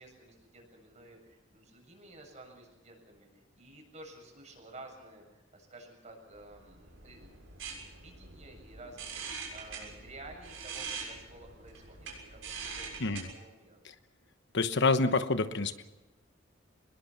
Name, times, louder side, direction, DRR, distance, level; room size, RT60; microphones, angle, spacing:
voice 1, 0.0-7.6 7.9-13.8, right 2 dB, 35° right, 2 dB, 7.4 m, -52 dB
sound 1, 6.4-13.2, right 5 dB, 70° right, 6.7 m, -44 dB
voice 2, 14.5-15.8, left 3 dB, 60° left, 10 dB, 1.1 m, -27 dB
25.0 x 21.0 x 5.9 m, 1.1 s
head